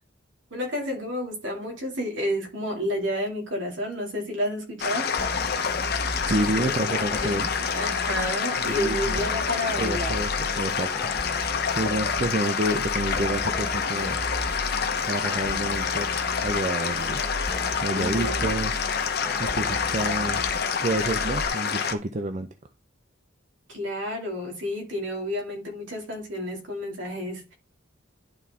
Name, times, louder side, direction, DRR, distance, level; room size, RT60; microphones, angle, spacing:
voice 1, 0.5-5.1 6.6-7.5 7.7-10.1 17.9-18.5 23.7-27.5, left 1 dB, 70° right, 2.7 m, -30 dB
sound 1, 4.8-21.9, left 6 dB, 55° left, 0.9 m, -27 dB
sound 2, 5.2-21.5, equal, 10° left, 0.6 m, -36 dB
voice 2, 6.3-7.5 8.6-9.2 9.8-11.1 11.7-14.2 15.1-16.1 16.4-17.2 17.8-18.7 19.4-20.4 20.8-22.5, right 2 dB, 35° right, 0.5 m, -29 dB
11.5 x 4.1 x 3.7 m
head